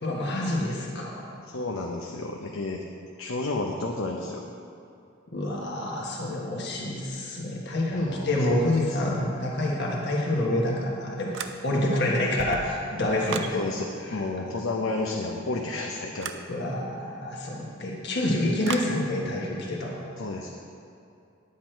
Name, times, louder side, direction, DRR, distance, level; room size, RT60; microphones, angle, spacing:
voice 1, 0.0-1.4 5.3-13.6 14.0-14.2 16.5-20.0, left 1 dB, 55° left, -3 dB, 1.4 m, -27 dB
voice 2, 1.4-2.8 3.2-4.5 7.9-8.7 13.5-16.3 20.2-20.5, left 2 dB, 80° left, 0 dB, 0.8 m, -31 dB
sound 1, 11.3-11.9 12.3-13.6 16.2-16.5 18.6-19.0, right 6 dB, 60° right, 0.5 m, -35 dB
10.5 x 8.4 x 4.5 m, 2.6 s
head